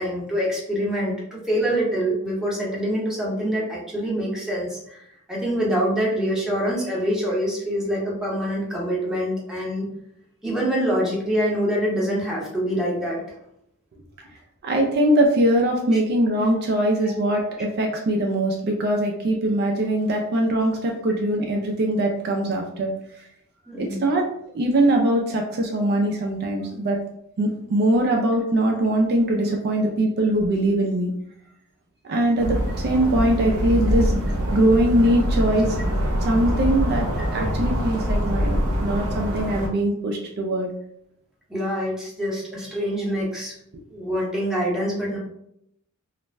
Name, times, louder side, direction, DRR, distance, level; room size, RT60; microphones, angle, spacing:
voice 1, 0.0-5.0 5.3-9.9 10.4-13.3 15.9-16.0 17.0-17.1 23.7-24.0 41.5-43.5 43.9-45.2, equal, 5° right, -5 dB, 0.7 m, -25 dB
voice 2, 14.6-22.9 23.8-24.3 24.5-27.0 27.4-31.1 32.1-34.2 34.5-35.8 36.2-40.7, right 1 dB, 50° right, 1 dB, 0.4 m, -22 dB
sound 1, 32.4-39.7, equal, 85° right, 0.7 m, -24 dB
2.4 x 2.1 x 3.2 m, 0.75 s
head